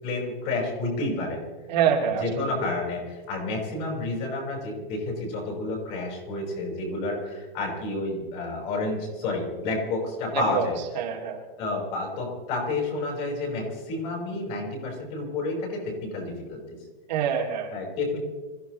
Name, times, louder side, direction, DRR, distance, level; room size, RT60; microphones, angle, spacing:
voice 1, 0.0-1.4 2.1-10.8 11.6-16.8 17.7-18.2, left 2 dB, 30° left, -1 dB, 5.3 m, -30 dB
voice 2, 1.7-2.5 10.3-10.7 10.9-11.4 17.1-17.7, right 8 dB, 50° right, -1 dB, 2.7 m, -25 dB
26.5 x 15.5 x 3.2 m, 1.4 s
supercardioid pair, 175°, 29 cm